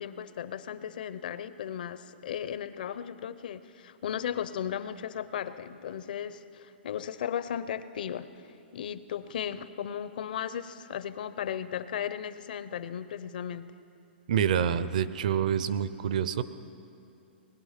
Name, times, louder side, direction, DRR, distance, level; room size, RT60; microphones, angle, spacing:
voice 1, 0.0-8.5 8.7-13.7, left 9 dB, 50° left, 13 dB, 0.6 m, -36 dB
voice 2, 14.3-16.4, right 8 dB, 45° right, 15 dB, 0.5 m, -27 dB
20.0 x 11.5 x 5.7 m, 2.6 s
hypercardioid pair, 175°, 6 cm